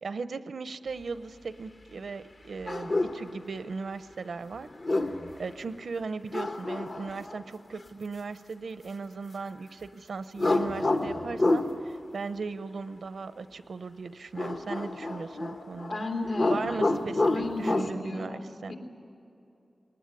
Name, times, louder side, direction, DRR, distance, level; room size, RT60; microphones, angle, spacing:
voice 1, 0.0-4.7 5.4-16.0 16.5-18.7, right 4 dB, 85° right, 12 dB, 0.7 m, -37 dB
sound 1, 2.7-3.2 4.7-5.3 6.3-7.4 10.4-11.7 14.4-16.0 16.2-17.9, left 2 dB, 50° left, 1.1 m, -28 dB
voice 2, 15.9-17.0 17.3-18.7, left 2 dB, 70° left, 1 dB, 3.2 m, -34 dB
20.5 x 19.0 x 9.8 m, 2.8 s
wide cardioid pair, 115°, 0 cm